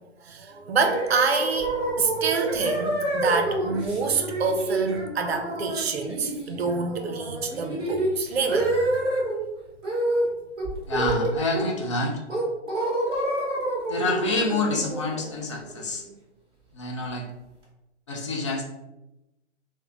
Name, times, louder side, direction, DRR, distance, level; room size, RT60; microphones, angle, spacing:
voice 1, 0.3-8.8, right 4 dB, 60° right, 6 dB, 0.5 m, -27 dB
sound 1, 0.8-9.4 9.8-10.3 10.6-11.8 12.3-16.0, right 1 dB, 10° right, 0.9 m, -28 dB
voice 2, 10.9-12.2 13.9-16.0 16.7-17.3 18.1-18.6, left 2 dB, 25° left, 1 dB, 0.4 m, -27 dB
3.1 x 2.1 x 3.6 m, 0.94 s
figure-of-eight pair, 130°, 36 cm